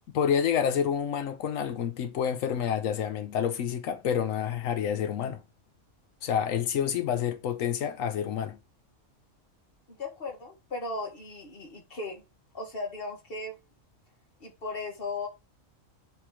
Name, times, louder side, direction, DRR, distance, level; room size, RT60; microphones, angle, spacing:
voice 1, 0.1-5.4 6.2-8.6, left 8 dB, 90° left, 1.1 m, -28 dB
voice 2, 9.9-12.2 12.5-13.6 14.4-15.3, left 3 dB, 45° left, 2.0 m, -36 dB
7.4 x 3.5 x 4.9 m
omnidirectional pair, 1.3 m